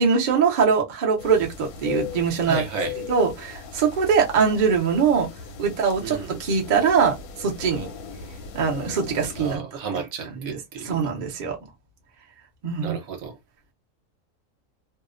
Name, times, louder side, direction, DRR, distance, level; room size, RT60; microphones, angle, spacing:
voice 1, 0.0-2.6 3.1-5.3 5.6-7.9 8.5-9.6 10.4-10.6 10.8-11.6 12.6-13.0, right 6 dB, 50° right, 0.5 m, -22 dB
sound 1, 1.2-9.6, left 6 dB, 80° left, 1.1 m, -38 dB
voice 2, 2.4-2.9 6.0-6.3 9.4-11.1 12.8-13.4, right 6 dB, 65° right, 1.1 m, -33 dB
2.7 x 2.0 x 2.4 m
omnidirectional pair, 1.6 m